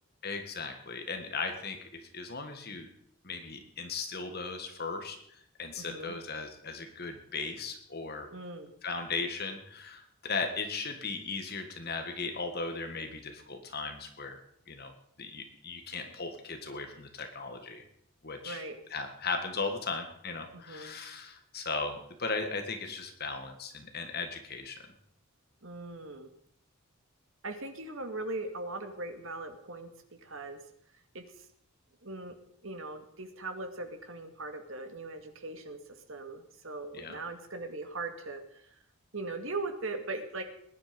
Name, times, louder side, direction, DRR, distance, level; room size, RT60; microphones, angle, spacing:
voice 1, 0.2-2.9 3.2-8.3 8.8-14.4 14.7-14.9 15.2-17.9 18.2-18.6 18.9-24.8 36.9-37.2, left 4 dB, 45° left, 6 dB, 1.8 m, -37 dB
voice 2, 5.8-6.1 8.3-8.7 18.4-18.8 20.5-21.0 25.6-26.3 27.4-30.6 31.1-31.5 32.0-32.4 32.6-38.8 39.1-40.4, right 2 dB, 60° right, 6 dB, 2.2 m, -40 dB
20.0 x 11.0 x 5.3 m, 0.69 s
head